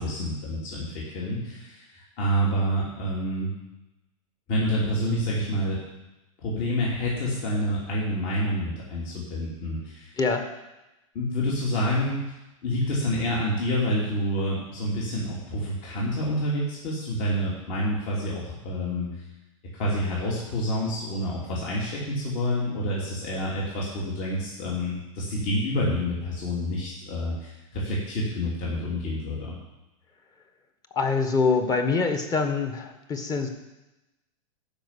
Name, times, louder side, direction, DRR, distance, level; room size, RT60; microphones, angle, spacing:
voice 1, 0.0-3.5 4.5-5.8 6.4-10.2 11.1-12.2 12.6-19.1 19.7-29.5, equal, 45° left, -5 dB, 3.2 m, -28 dB
voice 2, 30.9-33.5, left 4 dB, 20° left, 6 dB, 1.5 m, -24 dB
12.0 x 5.5 x 8.4 m, 0.99 s
hypercardioid pair, 135°, 17 cm